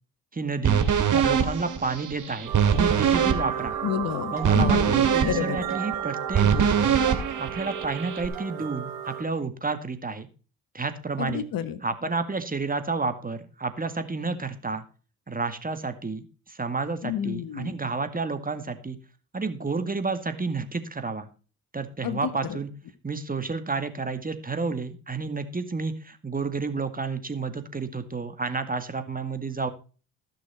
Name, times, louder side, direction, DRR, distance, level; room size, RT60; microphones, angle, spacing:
voice 1, 0.3-0.9 1.1-3.8 4.3-7.0 7.4-10.3 10.7-11.4 11.8-14.8 15.3-19.0 19.3-21.3 21.7-22.7 23.0-29.7, right 4 dB, 20° right, 9 dB, 1.9 m, -30 dB
sound 1, 0.6-8.3, right 7 dB, 50° right, 2.2 m, -24 dB
sound 2, 2.4-9.2, right 9 dB, 85° right, 3.0 m, -34 dB
voice 2, 3.8-5.6 11.2-11.8 17.0-17.7 22.0-22.6, left 9 dB, 55° left, 12 dB, 1.5 m, -30 dB
15.0 x 6.5 x 4.3 m, 0.36 s
hypercardioid pair, 50°, 41 cm